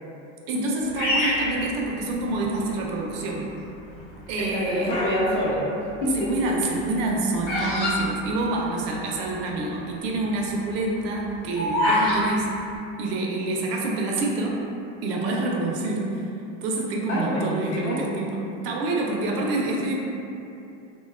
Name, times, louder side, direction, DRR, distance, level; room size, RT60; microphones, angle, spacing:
voice 1, 0.5-3.5 4.3-4.9 6.3-12.5 13.0-14.6 15.0-16.2 16.6-19.9, right 2 dB, 55° right, -1 dB, 0.4 m, -27 dB
Bird vocalization bird call bird song, 0.9-2.5 3.1-3.5 4.3-5.2 5.5-9.0 9.3-9.4 9.5-9.9 10.3-12.2, left 1 dB, 90° left, 1.1 m, -26 dB
voice 2, 4.4-6.5 17.1-18.1 19.3-19.5, left 1 dB, 40° left, -5 dB, 0.6 m, -27 dB
2.5 x 2.2 x 2.3 m, 2.7 s
supercardioid pair, 115°, 36 cm